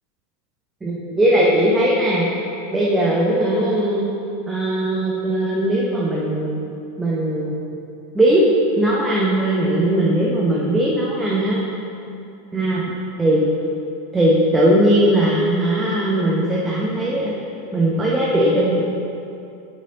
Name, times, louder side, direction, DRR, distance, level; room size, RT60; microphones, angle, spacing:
voice 1, 0.8-2.3 2.7-4.1 4.5-6.7 7.0-7.6 8.1-8.4 8.8-11.6 12.5-12.8 13.2-13.4 14.1-17.3 17.7-18.8, right 1 dB, 15° right, -5 dB, 0.9 m, -19 dB
7.8 x 5.3 x 3.8 m, 2.7 s
figure-of-eight pair, 85°, 0 cm